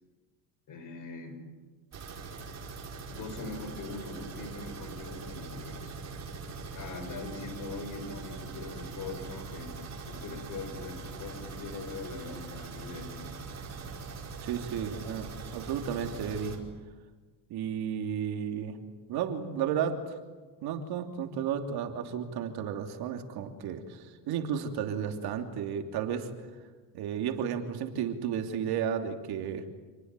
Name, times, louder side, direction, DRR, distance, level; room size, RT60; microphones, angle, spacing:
voice 1, 0.7-1.4 3.1-5.9 6.5-13.4, left 3 dB, 45° left, 8 dB, 6.0 m, -42 dB
sound 1, 1.9-16.6, right 4 dB, 40° right, 5.1 m, -42 dB
voice 2, 14.4-16.6 17.5-18.8 19.1-20.2 20.6-26.3 26.9-29.6, right 8 dB, 60° right, 5 dB, 3.1 m, -33 dB
28.0 x 20.0 x 9.1 m, 1.3 s
cardioid pair, 115°, 42 cm